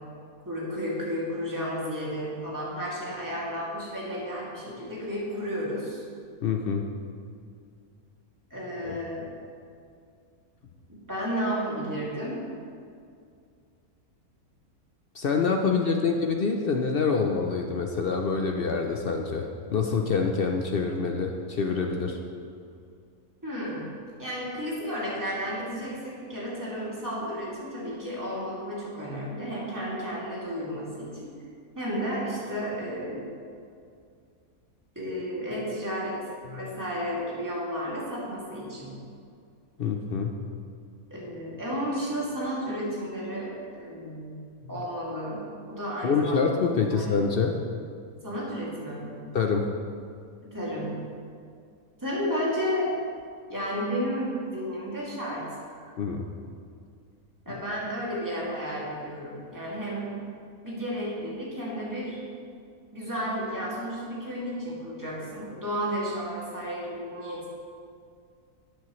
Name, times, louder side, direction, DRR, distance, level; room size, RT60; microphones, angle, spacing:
voice 1, 0.5-6.0 8.5-9.3 10.9-12.4 15.9-16.1 23.4-23.9 24.2-31.3 31.8-33.2 35.0-36.2 36.5-38.9 41.1-44.4 44.7-46.5 46.9-47.1 48.2-49.2 50.4-50.9 52.0-52.9 53.5-55.4 57.5-60.1 60.6-62.2 62.9-67.5, equal, 10° right, -7 dB, 2.3 m, -32 dB
voice 2, 6.4-6.9 8.8-9.0 15.1-22.2 36.5-36.6 39.8-40.4 46.0-47.6 49.3-49.7 56.0-56.3 57.5-57.6, left 5 dB, 65° left, 3 dB, 0.5 m, -26 dB
12.5 x 8.6 x 3.1 m, 2.3 s
omnidirectional pair, 1.6 m